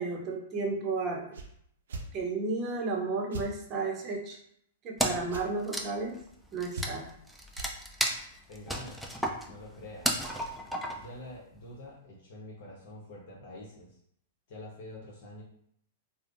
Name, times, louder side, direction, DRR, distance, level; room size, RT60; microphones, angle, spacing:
voice 1, 0.0-1.4 2.1-4.4 4.8-6.2 6.5-7.1, right 3 dB, 35° right, 0 dB, 0.7 m, -33 dB
sound 1, 1.3-1.5 1.9-2.1 3.3-3.5 5.3-5.5 6.7-7.1 7.5-7.7, right 2 dB, 70° right, 0.5 m, -38 dB
Wood, 5.0-5.4 5.6-11.2, equal, ahead, 0.4 m, -33 dB
voice 2, 8.5-10.2 10.9-14.0 14.5-15.4, left 1 dB, 60° left, -4 dB, 0.8 m, -47 dB
3.3 x 2.0 x 2.5 m, 0.69 s
hypercardioid pair, 110°, 0 cm